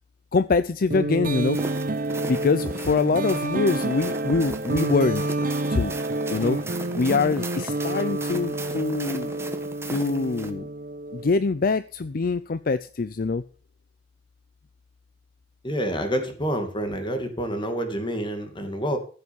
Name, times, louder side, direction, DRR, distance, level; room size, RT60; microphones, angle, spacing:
voice 1, 0.3-1.6 2.3-5.4 5.7-5.9 6.3-6.6 7.0-9.3 9.9-10.7 11.1-13.4, left 4 dB, 55° left, 14 dB, 0.5 m, -24 dB
sound 1, 0.9-11.5, right 2 dB, 50° right, 0.9 m, -29 dB
sound 2, 1.4-10.5, right 2 dB, 15° right, 1.3 m, -38 dB
voice 2, 15.6-19.0, equal, 25° left, 6 dB, 2.4 m, -28 dB
15.0 x 6.7 x 7.0 m, 0.41 s
head